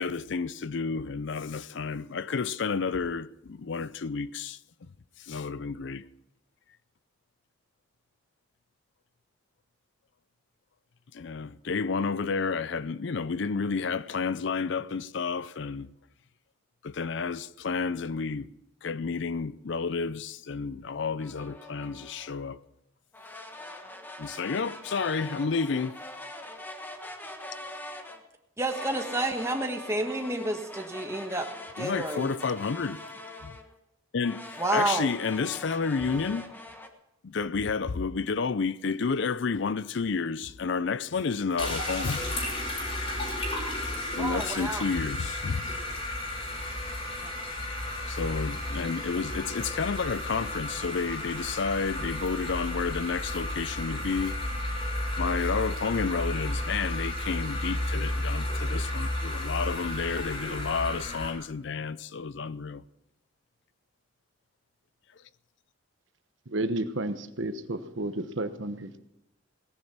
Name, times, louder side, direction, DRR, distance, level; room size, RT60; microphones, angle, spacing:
voice 1, 0.0-4.6 5.2-6.0 11.1-15.9 16.8-18.5 18.8-22.6 24.2-26.0 31.8-33.0 33.4-33.5 34.1-36.5 37.2-42.3 44.1-45.7 48.1-54.4 55.2-62.8, left 5 dB, 60° left, 0.5 m, -31 dB
sound 1, 21.2-22.4 23.1-28.2 28.7-33.7 34.2-36.9, left 1 dB, 10° left, 1.3 m, -43 dB
voice 2, 28.6-31.5 31.8-32.3 34.6-35.1 44.2-44.9 47.2-47.3, right 2 dB, 15° right, 1.4 m, -30 dB
sound 2, 41.6-61.3, left 1 dB, 30° left, 5.1 m, -33 dB
voice 3, 66.5-69.0, right 1 dB, 65° right, 1.1 m, -32 dB
18.0 x 10.5 x 6.0 m
head